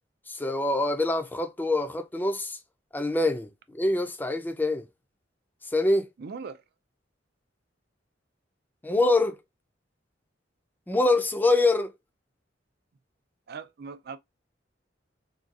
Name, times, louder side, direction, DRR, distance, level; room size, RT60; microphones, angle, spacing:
voice 1, 0.3-2.6 2.9-3.5 3.7-4.8 5.7-6.1 8.8-9.4 10.9-11.9, left 2 dB, 10° left, 0.4 m, -24 dB
voice 2, 6.2-6.6 13.5-14.2, right 5 dB, 60° right, 0.4 m, -39 dB
3.7 x 2.3 x 2.5 m
head